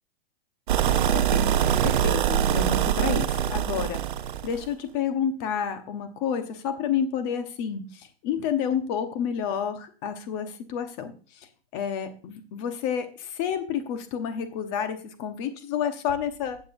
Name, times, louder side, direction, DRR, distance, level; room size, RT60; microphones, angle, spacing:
sound 1, 0.7-4.7, right 10 dB, 50° right, 0.8 m, -23 dB
voice 1, 0.9-4.0 4.4-11.5 11.7-16.6, left 8 dB, 25° left, 9 dB, 1.1 m, -30 dB
15.0 x 7.9 x 2.6 m, 0.37 s
hypercardioid pair, 165°, 32 cm